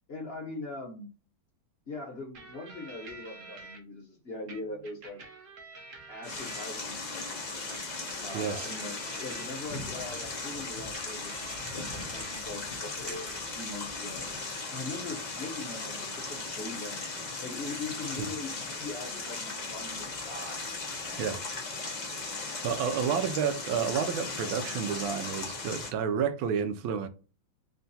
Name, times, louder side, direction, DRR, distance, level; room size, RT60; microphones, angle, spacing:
voice 1, 0.1-1.1 1.9-5.2 6.1-7.7 8.2-14.3 14.7-17.1 17.4-20.6 20.9-21.2, left 2 dB, 40° left, 0.9 m, -41 dB
sound 1, 2.3-3.8 4.5-7.1 7.7-12.4 12.7-13.6, right 3 dB, 55° right, 1.0 m, -49 dB
sound 2, 6.2-25.9, left 3 dB, 55° left, 0.4 m, -37 dB
voice 2, 8.3-8.7 18.2-18.3 21.2-21.4 22.6-27.1, right 7 dB, 80° right, 1.4 m, -30 dB
3.7 x 2.2 x 4.0 m
omnidirectional pair, 2.2 m